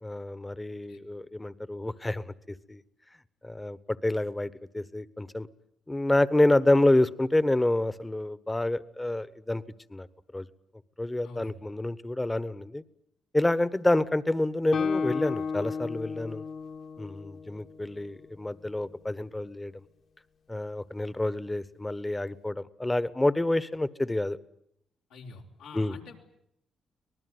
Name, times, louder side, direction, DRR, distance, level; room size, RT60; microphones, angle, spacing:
voice 1, 0.0-2.2 2.7-2.8 3.4-5.5 5.9-9.6 9.9-10.1 10.3-10.5 11.0-12.8 13.3-16.4 17.0-19.7 20.5-24.4 25.7-26.0, left 1 dB, 15° left, 16 dB, 1.3 m, -28 dB
voice 2, 11.2-11.6 25.1-26.2, left 4 dB, 90° left, -1 dB, 4.2 m, -46 dB
Guitar, 14.7-18.4, left 5 dB, 65° left, 2.4 m, -33 dB
25.0 x 19.5 x 9.6 m, 0.75 s
supercardioid pair, 65°, 0 cm